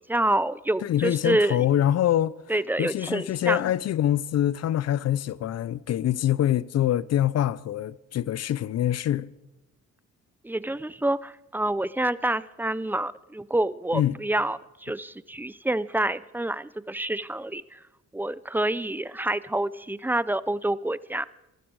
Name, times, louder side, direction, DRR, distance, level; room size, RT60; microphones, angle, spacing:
voice 1, 0.0-1.6 2.5-3.6 10.4-17.8 18.1-21.3, right 1 dB, 5° right, 0.4 m, -27 dB
voice 2, 0.8-2.4 2.8-9.3 13.9-14.1, left 11 dB, 55° left, 0.6 m, -25 dB
19.0 x 14.0 x 4.7 m
cardioid pair, 90°, 30 cm